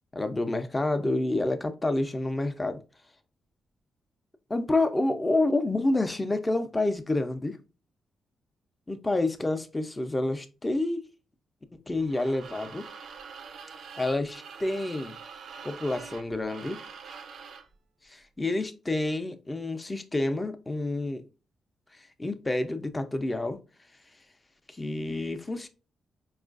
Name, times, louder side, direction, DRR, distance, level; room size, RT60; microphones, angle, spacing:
voice 1, 0.1-2.8 4.5-7.6 8.9-11.1 11.7-12.8 14.0-15.1 15.6-16.8 18.0-21.2 21.9-23.6 24.7-25.7, left 2 dB, 20° left, 0.5 m, -28 dB
sound 1, 12.0-17.7, right 6 dB, 65° right, 0.4 m, -45 dB
4.5 x 2.4 x 2.4 m
cardioid pair, 105°, 0 cm